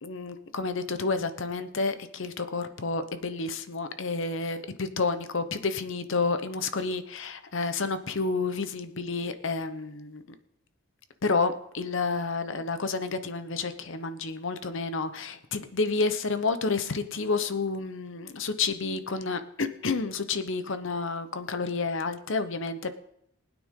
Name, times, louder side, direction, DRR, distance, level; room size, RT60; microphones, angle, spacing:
voice 1, 0.0-10.2 11.2-22.9, left 4 dB, 60° left, 10 dB, 0.9 m, -30 dB
20.5 x 9.2 x 3.7 m, 0.76 s
head